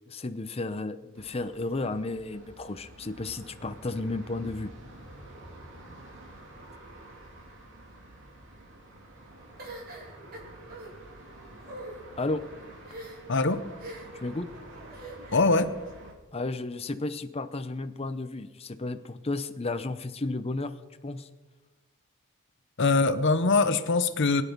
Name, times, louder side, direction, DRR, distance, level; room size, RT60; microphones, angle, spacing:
voice 1, 0.1-4.7 12.2-12.4 14.2-14.5 16.3-20.7 21.0-21.3, left 2 dB, 30° left, 9 dB, 0.7 m, -33 dB
sound 1, 1.1-16.1, right 1 dB, 60° right, 3.0 m, -48 dB
sound 2, 9.6-10.9 11.6-12.0 12.8-13.4 13.8-14.2 14.9-15.5, right 1 dB, 45° right, 3.6 m, -43 dB
voice 2, 13.3-13.6 15.3-15.7 22.8-24.4, left 3 dB, 60° left, 11 dB, 1.0 m, -23 dB
22.0 x 10.0 x 5.3 m, 1.2 s
head